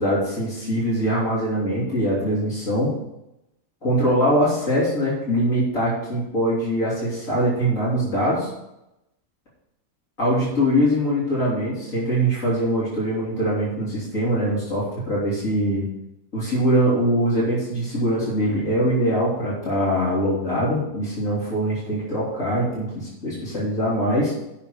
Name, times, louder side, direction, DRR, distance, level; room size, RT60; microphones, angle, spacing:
voice 1, 0.0-2.9 3.8-8.5 10.2-15.9 16.3-24.3, equal, 90° left, -8 dB, 3.8 m, -22 dB
8.6 x 6.1 x 6.5 m, 0.89 s
omnidirectional pair, 1.4 m